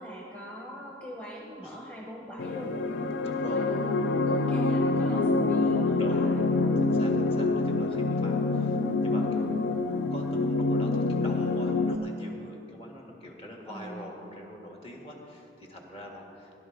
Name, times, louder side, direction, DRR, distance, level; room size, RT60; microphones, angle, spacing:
voice 1, 0.0-3.1 3.5-6.5 8.1-8.4 13.7-14.1, equal, 10° left, -2 dB, 1.1 m, -41 dB
sound 1, 2.4-12.0, left 3 dB, 75° left, 0.5 m, -26 dB
voice 2, 3.2-3.7 6.0-6.4 6.8-9.5 10.1-16.5, equal, 35° left, 0 dB, 1.6 m, -44 dB
17.5 x 10.5 x 3.9 m, 2.7 s
head